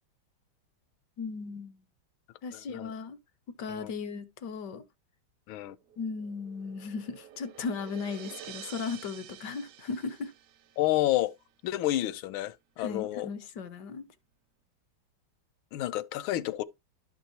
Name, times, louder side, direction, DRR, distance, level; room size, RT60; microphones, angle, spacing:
voice 1, 1.2-1.8 2.4-3.2 3.6-4.8 6.0-10.3 12.8-14.1, left 5 dB, 65° left, 1.3 m, -36 dB
voice 2, 2.5-2.9 3.7-3.9 5.5-5.8 10.8-11.3 11.6-13.3 15.7-16.6, left 15 dB, 85° left, 1.4 m, -30 dB
sound 1, 5.8-11.1, right 11 dB, 70° right, 0.8 m, -49 dB
11.5 x 5.4 x 2.8 m
omnidirectional pair, 2.2 m